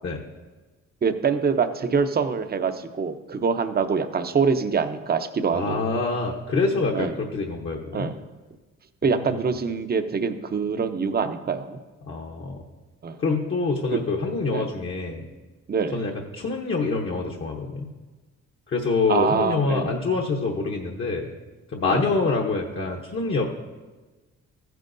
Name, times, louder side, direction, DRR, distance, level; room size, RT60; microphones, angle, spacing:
voice 1, 1.0-5.8 6.9-7.1 7.9-8.2 9.0-11.8 13.0-13.2 14.5-14.7 15.7-16.0 19.1-20.0 21.8-22.0, right 5 dB, 30° right, 8 dB, 0.7 m, -25 dB
voice 2, 5.5-8.1 9.0-9.4 12.1-12.6 13.2-15.2 15.9-17.9 18.7-21.3 21.7-23.5, left 3 dB, 40° left, 0 dB, 1.0 m, -26 dB
14.5 x 9.2 x 2.7 m, 1.2 s
cardioid pair, 90°, 30 cm